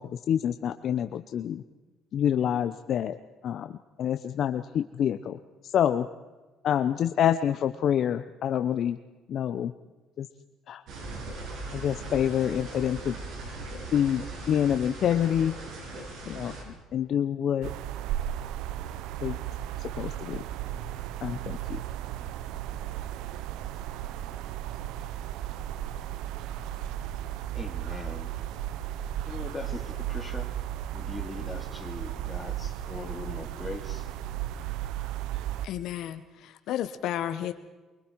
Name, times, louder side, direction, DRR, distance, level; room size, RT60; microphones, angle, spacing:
voice 1, 0.0-1.6 2.1-3.1 3.4-3.7 4.0-5.4 5.7-6.1 6.6-9.0 9.3-9.7 10.2-10.3 10.7-10.8 11.7-13.2 13.9-15.5 16.3-17.7 19.2-19.4 19.8-20.4 21.2-21.6, left 9 dB, 50° left, 9 dB, 0.8 m, -27 dB
sound 1, 10.9-16.6, right 3 dB, 65° right, 7.7 m, -39 dB
sound 2, 17.6-35.7, right 12 dB, 85° right, 0.8 m, -35 dB
voice 2, 27.5-28.3 29.2-30.5 30.9-34.1, left 3 dB, 15° left, 3 dB, 2.9 m, -40 dB
voice 3, 35.6-37.5, left 11 dB, 65° left, 10 dB, 1.2 m, -32 dB
24.5 x 24.0 x 4.7 m, 1.2 s
cardioid pair, 140°, 0 cm